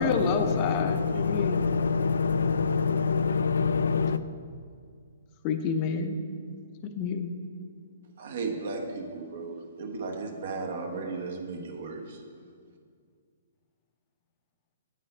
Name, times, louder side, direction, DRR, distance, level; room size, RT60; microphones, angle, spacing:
voice 1, 0.0-1.6 5.4-6.2 6.9-7.3, left 5 dB, 35° left, 7 dB, 0.7 m, -28 dB
voice 2, 0.7-4.2, left 5 dB, 85° left, 12 dB, 0.4 m, -25 dB
voice 3, 8.2-12.2, right 4 dB, 65° right, 3 dB, 1.3 m, -35 dB
9.2 x 8.8 x 3.3 m, 2.1 s
hypercardioid pair, 145°, 0 cm